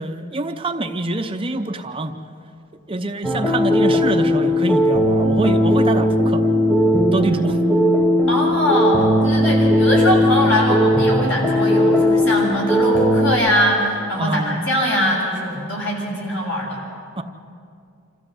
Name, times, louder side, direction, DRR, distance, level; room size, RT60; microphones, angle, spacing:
voice 1, 0.0-2.1 2.9-6.4 7.1-7.6 14.2-14.6 17.2-17.3, right 2 dB, 25° right, 6 dB, 0.7 m, -25 dB
sound 1, 3.2-13.3, equal, 10° left, 1.5 m, -17 dB
voice 2, 8.3-16.8, equal, 60° left, -2 dB, 6.9 m, -22 dB
27.0 x 14.5 x 7.6 m, 2.4 s
head